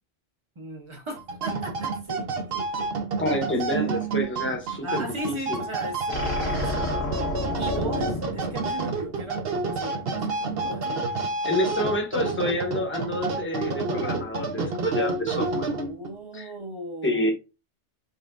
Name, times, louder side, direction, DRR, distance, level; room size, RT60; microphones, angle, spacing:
voice 1, 0.6-2.9 3.5-3.6 4.8-7.0 7.2-11.0 15.6-17.3, right 1 dB, 25° right, 0.9 m, -37 dB
sound 1, 1.2-16.1, right 3 dB, 55° right, 0.9 m, -29 dB
voice 2, 3.2-5.6 11.4-15.7 16.3-16.5 17.0-17.3, left 1 dB, 10° left, 0.9 m, -28 dB
sound 2, 6.1-9.4, left 1 dB, 85° left, 1.7 m, -30 dB
4.2 x 3.4 x 2.5 m
omnidirectional pair, 1.3 m